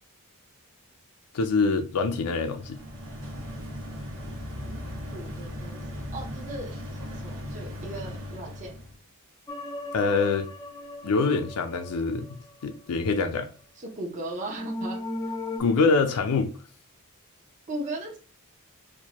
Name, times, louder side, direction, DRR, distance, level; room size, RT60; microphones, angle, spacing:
voice 1, 1.3-2.8 9.9-10.5 11.0-13.5 15.6-16.6, left 4 dB, 80° left, 0.4 m, -25 dB
sound 1, 2.4-9.0, left 1 dB, 65° right, 1.3 m, -38 dB
voice 2, 4.5-4.8 5.1-5.8 6.1-6.7 7.2-8.8 13.8-15.0 17.7-18.2, right 1 dB, 35° right, 0.7 m, -37 dB
sound 2, 9.5-12.8 14.4-15.6, left 1 dB, 15° left, 0.4 m, -37 dB
4.5 x 2.2 x 2.8 m
head